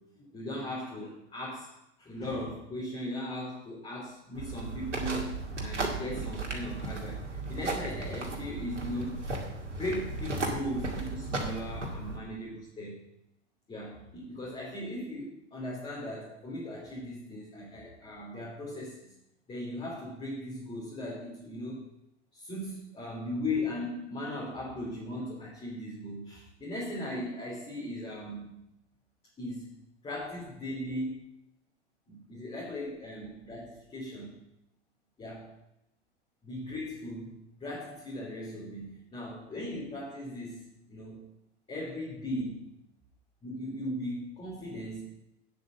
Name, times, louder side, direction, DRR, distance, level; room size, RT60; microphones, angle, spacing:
voice 1, 0.0-1.7 2.0-5.3 5.6-9.2 9.8-13.0 13.7-19.1 19.5-21.8 22.3-28.6 29.4-29.7 30.0-31.2 32.1-34.4 35.2-35.5 36.4-41.2 41.7-42.7 43.4-45.1, left 1 dB, 15° left, -5 dB, 3.2 m, -38 dB
sound 1, 4.3-12.2, right 3 dB, 85° right, 2.3 m, -35 dB
9.3 x 7.8 x 6.6 m, 0.84 s
figure-of-eight pair, 95°, 35 cm